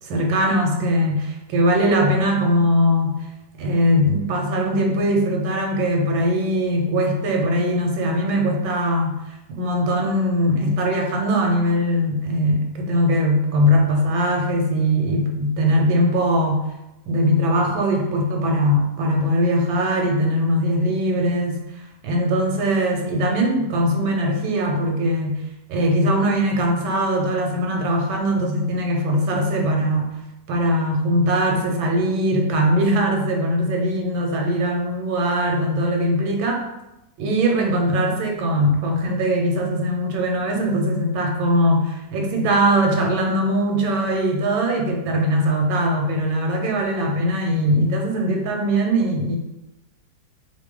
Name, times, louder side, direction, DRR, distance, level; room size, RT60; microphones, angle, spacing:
voice 1, 0.0-3.2 3.6-9.2 9.5-16.7 17.1-21.6 22.0-25.4 25.7-30.1 30.5-36.7 37.2-49.4, equal, 85° right, 2 dB, 1.6 m, -21 dB
3.9 x 3.6 x 3.7 m, 0.90 s
omnidirectional pair, 2.1 m